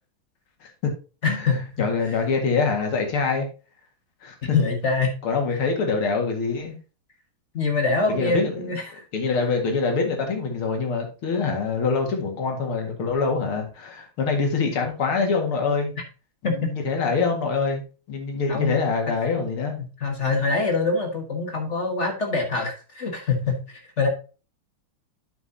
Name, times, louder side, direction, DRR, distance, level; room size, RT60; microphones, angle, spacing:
voice 1, 0.6-0.9 1.3-1.4 1.8-3.5 4.2-4.3 5.2-6.8 8.1-8.7 9.1-15.9 16.4-17.8 18.1-19.8, left 4 dB, 85° left, 2.8 m, -25 dB
voice 2, 1.2-1.6 2.0-2.1 4.4-5.1 7.5-9.0 16.4-16.7 18.5-18.8 20.0-24.1, left 4 dB, 35° left, 1.5 m, -24 dB
9.1 x 7.2 x 2.8 m
omnidirectional pair, 2.3 m